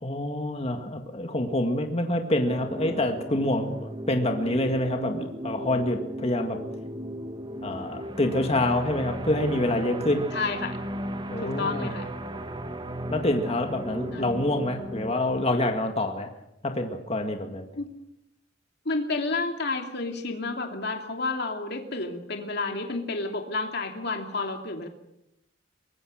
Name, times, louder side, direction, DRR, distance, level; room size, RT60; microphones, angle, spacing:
voice 1, 0.0-6.6 7.6-10.3 11.3-11.9 13.1-16.3 16.6-17.7, left 1 dB, 30° left, 4 dB, 2.0 m, -27 dB
sound 1, 2.5-15.1, right 1 dB, 25° right, 1.4 m, -35 dB
voice 2, 10.3-10.8 11.4-12.1 14.1-14.3 17.7-17.9 18.8-24.9, left 3 dB, 60° left, 3 dB, 2.7 m, -30 dB
23.5 x 21.5 x 6.5 m, 0.82 s
head